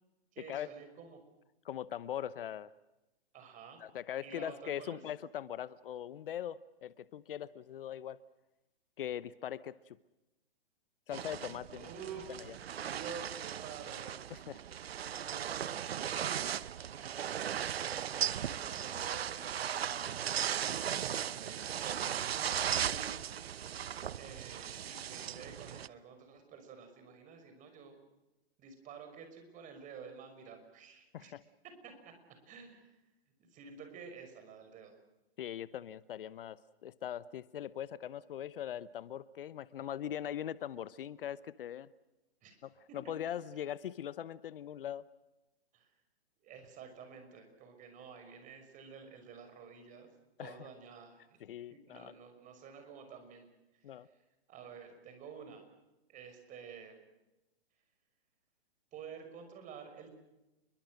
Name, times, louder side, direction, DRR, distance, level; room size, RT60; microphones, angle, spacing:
voice 1, 0.3-1.2 3.3-3.8 4.2-5.0 11.7-14.2 14.4-14.6 15.2-16.7 17.8-20.1 20.6-23.2 24.2-28.0 28.6-31.3 31.6-32.1 32.5-33.0 33.4-34.9 42.4-42.6 42.9-43.0 45.7-45.9 46.4-50.1 50.4-51.4 51.7-53.5 53.9-54.1 54.5-55.7 56.1-57.0 58.9-60.2, right 6 dB, 25° right, 6 dB, 6.0 m, -50 dB
voice 2, 1.6-2.7 3.8-8.2 9.0-10.0 11.1-11.9 12.5-12.6 14.3-14.6 31.1-31.4 35.4-41.9 42.6-45.0 50.4-50.7 51.4-52.1 53.8-54.1, left 10 dB, 60° left, 18 dB, 1.0 m, -41 dB
sound 1, 11.1-25.9, right 9 dB, 70° right, 0.9 m, -37 dB
29.0 x 23.0 x 6.5 m, 0.99 s
hypercardioid pair, 130°, 31 cm